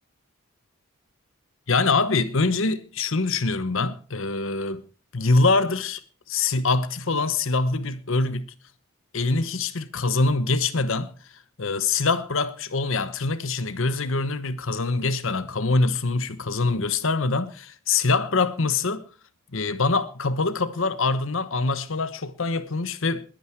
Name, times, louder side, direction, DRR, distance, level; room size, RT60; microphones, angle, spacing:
voice 1, 1.7-4.8 5.1-6.0 6.3-8.5 9.1-11.1 11.6-19.0 19.5-23.2, left 3 dB, 60° left, 1.0 m, -24 dB
21.5 x 9.3 x 4.5 m
head